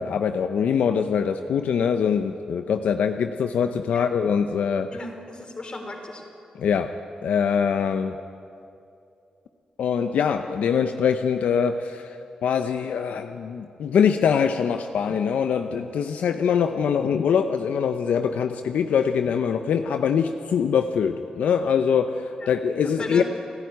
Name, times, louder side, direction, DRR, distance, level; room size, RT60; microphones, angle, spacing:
voice 1, 0.0-4.9 6.5-6.9 7.2-8.2 9.8-23.2, left 7 dB, 85° left, 8 dB, 0.7 m, -23 dB
voice 2, 4.9-6.2 22.4-22.5 22.8-23.2, left 2 dB, 40° left, 4 dB, 4.0 m, -35 dB
29.5 x 11.0 x 9.4 m, 2.6 s
cardioid pair, 70°, 2 cm